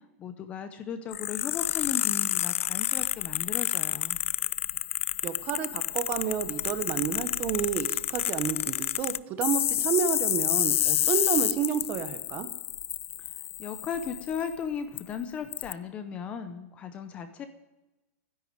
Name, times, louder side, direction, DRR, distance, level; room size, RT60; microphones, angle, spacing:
voice 1, 0.2-4.2 13.6-17.5, left 7 dB, 15° left, 9 dB, 0.7 m, -36 dB
sound 1, 1.1-14.5 15.0-15.1 15.5-15.7, left 13 dB, 65° left, 0.4 m, -29 dB
voice 2, 5.2-12.5, right 8 dB, 20° right, 11 dB, 1.0 m, -30 dB
12.5 x 10.5 x 9.5 m, 1.0 s
supercardioid pair, 180°, 8 cm